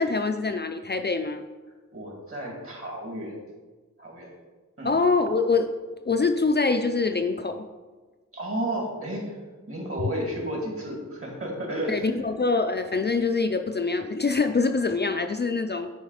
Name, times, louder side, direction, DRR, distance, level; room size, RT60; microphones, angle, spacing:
voice 1, 0.0-1.4 4.8-5.7 6.1-7.7 11.9-15.9, left 4 dB, 35° left, 6 dB, 0.4 m, -24 dB
voice 2, 1.9-3.4 4.0-4.3 4.8-4.9 8.3-9.4 9.7-12.2, right 1 dB, 45° right, -1 dB, 2.5 m, -32 dB
9.7 x 4.0 x 4.9 m, 1.3 s
wide cardioid pair, 75°, 31 cm